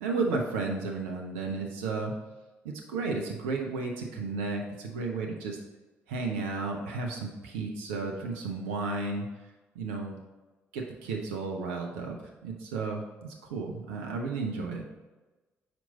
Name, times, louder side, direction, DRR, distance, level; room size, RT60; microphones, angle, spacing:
voice 1, 0.0-2.1 2.6-5.6 6.1-9.3 9.7-10.2 10.7-14.8, right 3 dB, 75° right, 1 dB, 0.6 m, -33 dB
5.2 x 4.5 x 4.0 m, 1.2 s
figure-of-eight pair, 45°, 7 cm